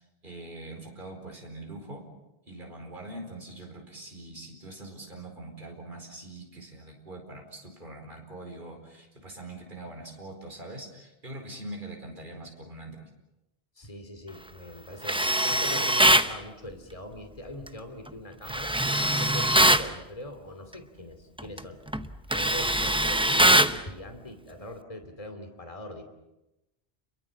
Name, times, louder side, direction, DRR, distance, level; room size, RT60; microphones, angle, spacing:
voice 1, 0.2-2.1 2.5-13.1, right 2 dB, 50° right, 2 dB, 4.9 m, -43 dB
voice 2, 13.8-18.8 19.1-21.8 22.3-26.0, left 1 dB, 30° left, 6 dB, 2.7 m, -42 dB
Tools, 15.0-16.3 18.5-19.9 21.4-21.6 21.9-23.8, right 1 dB, 5° right, 0.7 m, -22 dB
30.0 x 22.5 x 7.3 m, 0.95 s
omnidirectional pair, 1.1 m